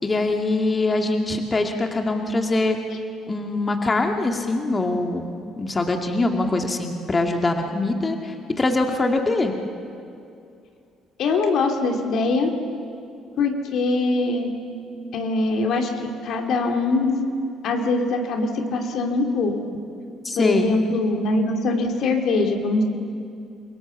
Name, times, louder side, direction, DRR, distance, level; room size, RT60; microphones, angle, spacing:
voice 1, 0.0-2.8 3.3-9.5 20.2-20.7, left 2 dB, 25° left, 3 dB, 2.2 m, -23 dB
voice 2, 11.2-12.5 13.4-14.5 15.1-15.9 16.2-17.2 17.6-19.5 20.4-22.8, left 3 dB, 55° left, 3 dB, 2.6 m, -22 dB
29.0 x 23.0 x 7.1 m, 2.5 s
figure-of-eight pair, 45°, 0 cm